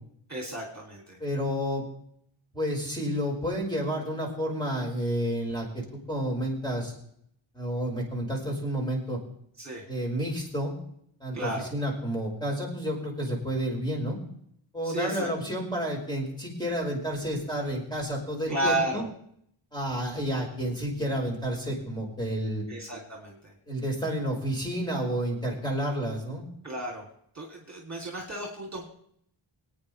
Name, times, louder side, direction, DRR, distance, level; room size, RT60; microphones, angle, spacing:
voice 1, 0.3-1.2 9.6-9.8 11.3-11.7 14.8-15.3 18.5-19.1 22.7-23.6 26.6-27.1 27.3-28.9, right 1 dB, 35° right, -1 dB, 2.9 m, -33 dB
voice 2, 1.2-1.9 2.5-6.9 7.5-9.2 9.9-10.7 11.2-14.2 14.7-19.0 19.7-22.6 23.7-26.4, equal, 10° left, -2 dB, 5.0 m, -30 dB
24.5 x 9.4 x 3.3 m, 0.68 s
wide cardioid pair, 90°, 50 cm